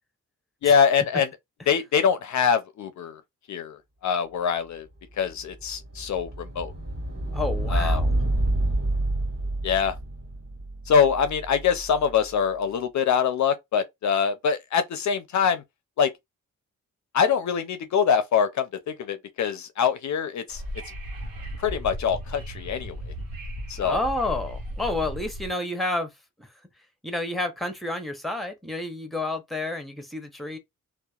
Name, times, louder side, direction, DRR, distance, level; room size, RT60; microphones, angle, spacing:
voice 1, 0.6-1.3 1.7-3.2 3.5-3.8 4.0-4.9 5.2-6.7 7.7-8.0 9.6-10.0 10.9-15.6 16.0-16.1 17.1-20.6 21.6-23.0 23.7-24.0, left 7 dB, 55° left, 0.4 m, -24 dB
sound 1, 5.3-12.1, right 1 dB, 50° right, 1.7 m, -28 dB
voice 2, 7.3-8.1 23.8-26.1 26.4-26.5 27.0-30.6, left 2 dB, ahead, 0.7 m, -30 dB
Wind / Subway metro underground, 20.5-25.5, equal, 80° right, 0.9 m, -36 dB
2.8 x 2.0 x 2.3 m
supercardioid pair, 55°, 34 cm